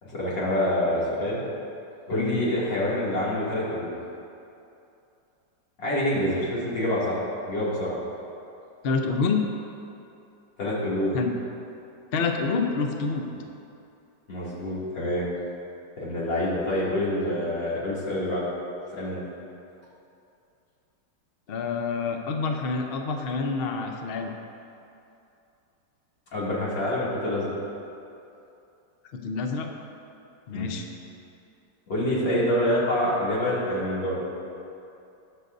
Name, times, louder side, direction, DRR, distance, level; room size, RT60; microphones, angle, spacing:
voice 1, 0.0-1.4 2.1-3.9 5.8-7.2 7.5-8.0 10.6-11.2 14.3-15.3 16.0-18.4 18.9-19.2 26.3-27.5 30.5-30.8 31.9-34.2, left 1 dB, 90° left, -8 dB, 3.2 m, -26 dB
voice 2, 2.1-2.4 8.8-9.4 11.1-11.3 12.1-13.3 21.5-24.3 29.1-29.7 30.5-30.9, left 4 dB, 55° left, 3 dB, 0.6 m, -27 dB
20.0 x 6.7 x 2.6 m, 2.7 s
omnidirectional pair, 1.9 m